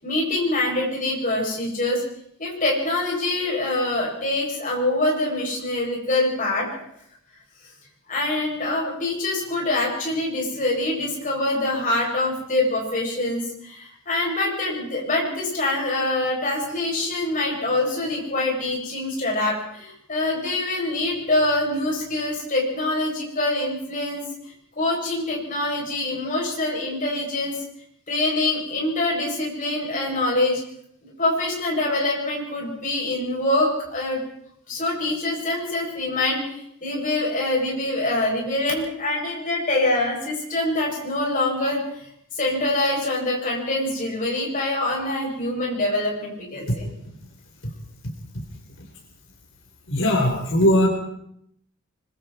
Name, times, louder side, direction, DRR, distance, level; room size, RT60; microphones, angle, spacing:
voice 1, 0.0-2.0 2.4-6.8 8.1-24.2 24.8-27.5 28.1-30.6 31.0-34.2 34.7-46.9, left 2 dB, 35° left, -2 dB, 8.0 m, -25 dB
voice 2, 49.9-50.9, equal, 60° left, 1 dB, 4.4 m, -19 dB
25.0 x 22.5 x 4.6 m, 0.72 s
head